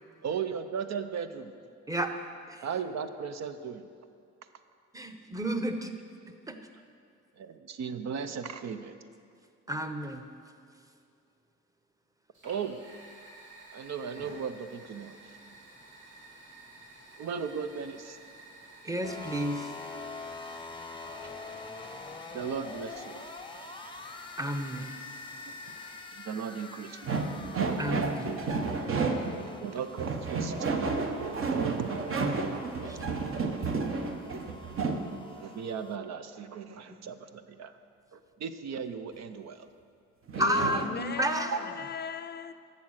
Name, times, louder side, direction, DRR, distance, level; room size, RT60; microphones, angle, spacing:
voice 1, 0.2-1.6 2.6-3.9 7.4-9.0 12.4-12.8 13.7-15.4 17.2-18.2 21.2-21.4 22.3-23.2 25.7-25.8 26.1-27.1 29.4-31.1 31.5-31.9 35.3-37.8 38.1-39.7 41.5-41.6, right 6 dB, 60° right, 0.7 m, -37 dB
voice 2, 4.9-5.9 6.3-6.6 9.7-10.3 18.8-19.7 24.4-24.9 27.8-28.3 32.2-32.4 32.9-33.0 40.4-41.5, right 1 dB, 10° right, 0.9 m, -31 dB
Fire, 12.3-26.2, right 2 dB, 75° right, 2.9 m, -52 dB
sound 1, 19.0-36.0, left 4 dB, 15° left, 0.7 m, -45 dB
sound 2, 27.0-29.5 30.0-35.1 40.3-40.9, right 4 dB, 45° right, 1.0 m, -31 dB
voice 3, 40.4-42.5, left 7 dB, 35° left, 0.4 m, -38 dB
11.5 x 7.6 x 6.4 m
cardioid pair, 90°, 30 cm